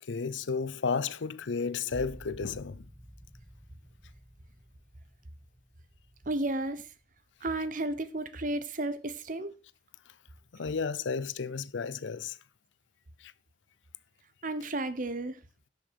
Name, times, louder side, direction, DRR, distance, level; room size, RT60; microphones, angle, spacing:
voice 1, 0.0-2.9 10.1-10.2 10.5-12.4 13.2-13.3, left 5 dB, 85° left, 0.6 m, -33 dB
sound 1, 1.9-7.3 7.8-8.4, equal, 5° right, 1.1 m, -52 dB
voice 2, 6.3-6.8 7.4-9.5 14.4-15.4, right 2 dB, 45° right, 1.0 m, -32 dB
11.0 x 6.3 x 5.1 m
head